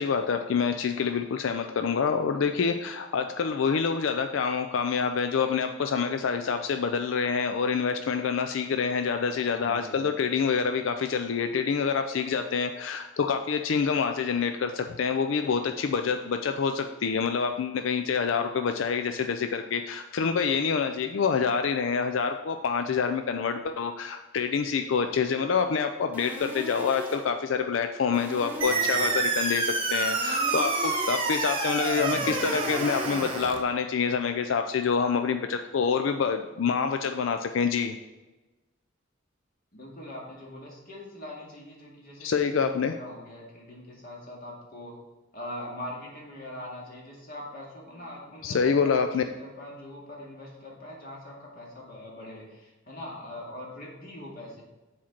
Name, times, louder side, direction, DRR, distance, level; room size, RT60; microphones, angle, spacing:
voice 1, 0.0-38.0 42.2-42.9 48.4-49.2, left 6 dB, 80° left, 7 dB, 0.4 m, -27 dB
voice 2, 9.5-10.2 28.6-29.2 31.9-33.1 39.7-44.9 45.3-54.6, left 1 dB, 50° left, -3 dB, 2.3 m, -42 dB
sound 1, 26.1-27.4 28.1-29.4 30.1-31.4 32.1-33.4, equal, 10° right, 1.0 m, -39 dB
sound 2, 28.6-33.6, right 3 dB, 30° right, 1.1 m, -28 dB
7.4 x 4.3 x 5.9 m, 1.1 s
head